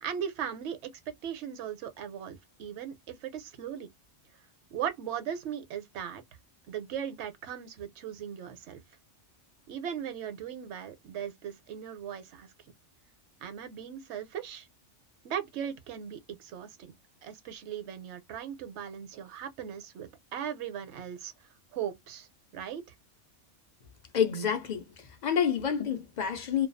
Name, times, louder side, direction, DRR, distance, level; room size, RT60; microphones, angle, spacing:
voice 1, 0.0-0.9 1.2-3.9 4.7-6.2 6.7-8.8 9.7-12.5 13.4-14.7 15.2-16.9 17.2-21.3 21.7-22.8, right 9 dB, 70° right, 0.8 m, -38 dB
voice 2, 24.1-24.8 25.2-26.7, left 8 dB, 60° left, 0.4 m, -28 dB
2.2 x 2.2 x 2.4 m
omnidirectional pair, 1.2 m